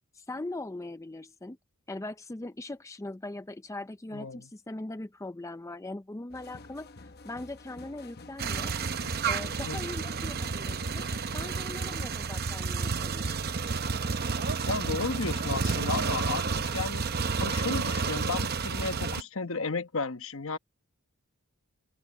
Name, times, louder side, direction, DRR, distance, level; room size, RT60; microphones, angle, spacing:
voice 1, 0.1-1.6 1.9-8.7 9.2-13.4, left 2 dB, 15° left, 0.4 m, -40 dB
voice 2, 4.1-4.5 9.7-9.8 14.7-17.0 17.4-20.6, left 4 dB, 65° left, 1.2 m, -33 dB
sound 1, 6.3-12.1, left 3 dB, 45° left, 0.9 m, -50 dB
sound 2, 8.4-19.2, right 4 dB, 45° right, 0.7 m, -31 dB
open air
head